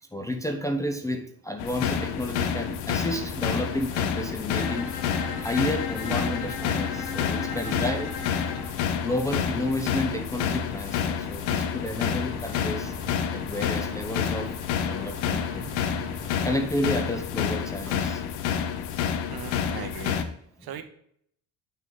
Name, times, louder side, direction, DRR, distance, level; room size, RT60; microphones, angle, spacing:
voice 1, 0.1-4.9 5.4-8.2 8.6-8.7 9.0-12.9 13.3-14.5 14.8-15.7 16.4-18.2 20.6-20.7, left 1 dB, 5° left, 3 dB, 0.6 m, -31 dB
sound 1, 1.6-20.2, left 8 dB, 90° left, 1.0 m, -29 dB
sound 2, 3.1-16.4, equal, 10° right, 2.2 m, -45 dB
Bowed string instrument, 4.5-8.8, left 5 dB, 55° left, 1.6 m, -36 dB
voice 2, 7.5-7.8 18.9-20.2 20.6-20.8, right 9 dB, 55° right, 7 dB, 1.2 m, -39 dB
9.1 x 6.0 x 3.7 m, 0.67 s
cardioid pair, 130°, 45 cm